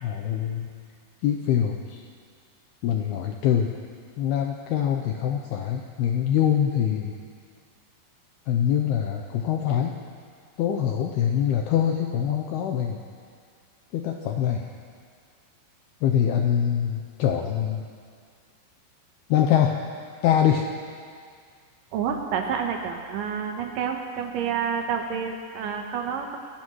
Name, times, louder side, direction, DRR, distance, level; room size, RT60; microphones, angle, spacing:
voice 1, 0.0-0.7 1.2-2.0 2.8-3.7 4.2-7.1 8.5-9.9 10.6-13.0 13.9-14.7 16.0-17.8 19.3-19.8 20.2-20.7, left 9 dB, 85° left, 3 dB, 2.3 m, -24 dB
voice 2, 21.9-26.4, right 7 dB, 80° right, 3 dB, 1.9 m, -29 dB
28.0 x 16.0 x 3.1 m, 2.1 s
omnidirectional pair, 5.3 m